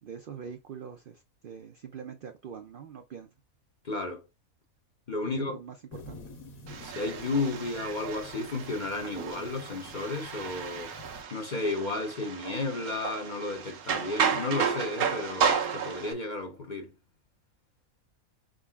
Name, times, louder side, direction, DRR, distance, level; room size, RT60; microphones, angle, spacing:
voice 1, 0.0-3.3 5.2-6.2, right 7 dB, 65° right, 0.5 m, -44 dB
voice 2, 3.8-4.2 5.1-5.6 6.8-10.9 11.3-16.9, left 3 dB, 45° left, 0.6 m, -33 dB
sound 1, 5.9-11.2, left 1 dB, 75° left, 1.6 m, -49 dB
sound 2, 6.7-16.1, right 6 dB, 90° right, 1.3 m, -33 dB
4.6 x 3.8 x 2.3 m
omnidirectional pair, 1.5 m